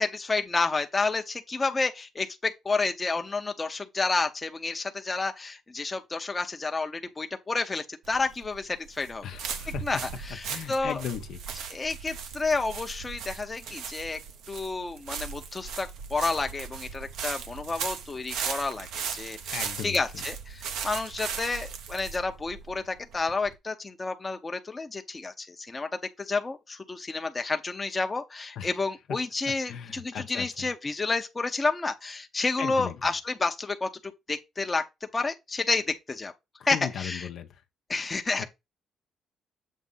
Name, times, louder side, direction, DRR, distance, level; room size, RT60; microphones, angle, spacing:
voice 1, 0.0-9.3 9.8-11.0 11.7-14.2 14.5-25.9 26.2-34.8 35.1-36.3 36.7-37.3 37.9-38.4, left 3 dB, 25° left, 0.7 m, -30 dB
sound 1, 8.0-23.6, right 6 dB, 85° right, 0.8 m, -38 dB
voice 2, 9.2-10.0 10.5-11.4 19.5-20.0 28.6-28.7 29.7-30.7 32.6-32.9 36.7-37.5 38.4-38.5, left 9 dB, 75° left, 0.8 m, -36 dB
7.3 x 2.6 x 5.5 m
cardioid pair, 105°, 0 cm